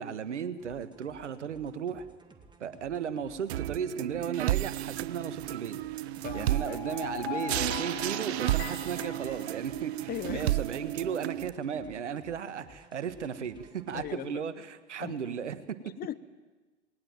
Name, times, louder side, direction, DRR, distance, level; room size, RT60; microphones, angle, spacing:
voice 1, 0.0-2.1 2.6-5.8 6.3-15.9, right 7 dB, 80° right, 13 dB, 1.5 m, -35 dB
sound 1, 0.6-14.3, right 4 dB, 15° right, 2.2 m, -56 dB
sound 2, 3.5-11.5, right 15 dB, 60° right, 0.6 m, -33 dB
voice 2, 6.2-6.8 10.1-10.7 13.9-14.4 15.0-15.2 15.8-16.2, left 12 dB, 25° left, 15 dB, 0.8 m, -39 dB
sound 3, 6.3-10.2, left 10 dB, 60° left, 2.3 m, -41 dB
19.5 x 19.0 x 9.1 m, 1.3 s
hypercardioid pair, 100°, 35 cm